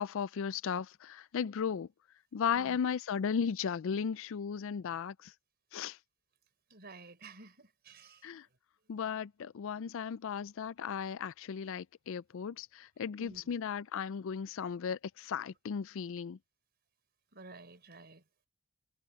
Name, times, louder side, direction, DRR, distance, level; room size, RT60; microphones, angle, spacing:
voice 1, 0.0-1.9 2.3-5.3 5.7-6.0 8.2-8.5 8.9-16.4, left 7 dB, 60° left, 0.4 m, -36 dB
voice 2, 2.5-2.8 6.7-8.3 13.2-13.5 17.3-18.2, right 3 dB, 45° right, 4.5 m, -52 dB
head